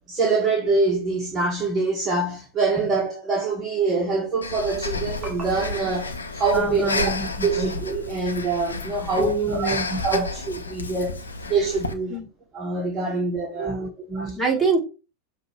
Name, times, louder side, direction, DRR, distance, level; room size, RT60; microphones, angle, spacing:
voice 1, 0.0-7.1 7.4-9.8 10.0-12.3 12.5-13.9 14.1-14.4, right 3 dB, 20° right, 1.8 m, -25 dB
Breathing, 4.4-11.9, left 3 dB, 75° left, 0.9 m, -31 dB
voice 2, 6.5-7.7 9.2-10.2 12.1-12.2 13.5-14.8, right 3 dB, ahead, 3.3 m, -26 dB
7.1 x 3.1 x 4.7 m
figure-of-eight pair, 90°, 0 cm